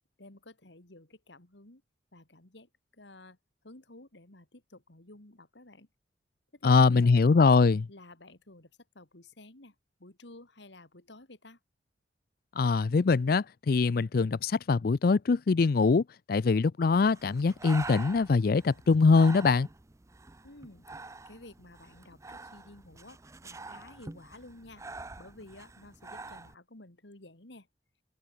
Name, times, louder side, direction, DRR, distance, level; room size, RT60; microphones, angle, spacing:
voice 1, 0.2-1.8 2.1-3.4 3.6-5.9 6.5-7.1 7.9-9.7 10.0-11.6 20.4-20.9 21.2-24.9 25.2-27.7, left 2 dB, 70° left, 2.8 m, -52 dB
voice 2, 6.6-7.9 12.6-16.0 16.3-19.7, left 4 dB, 50° left, 0.4 m, -23 dB
Breathing, 17.1-26.5, right 3 dB, 15° right, 0.5 m, -46 dB
head